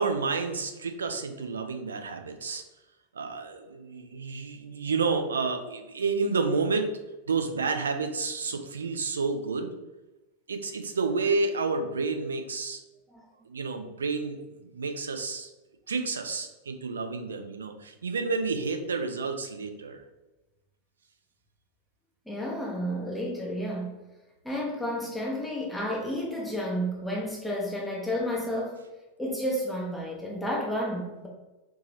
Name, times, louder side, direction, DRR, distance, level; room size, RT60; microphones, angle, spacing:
voice 1, 0.0-2.6 3.1-6.9 7.3-9.7 10.5-12.8 13.5-14.4 14.6-15.5 15.9-20.0, right 4 dB, 70° right, 6 dB, 0.4 m, -30 dB
voice 2, 22.3-24.0 24.4-28.8 29.2-31.3, equal, 5° left, -3 dB, 0.7 m, -31 dB
4.5 x 2.8 x 2.6 m, 1.1 s
figure-of-eight pair, 90°, 0 cm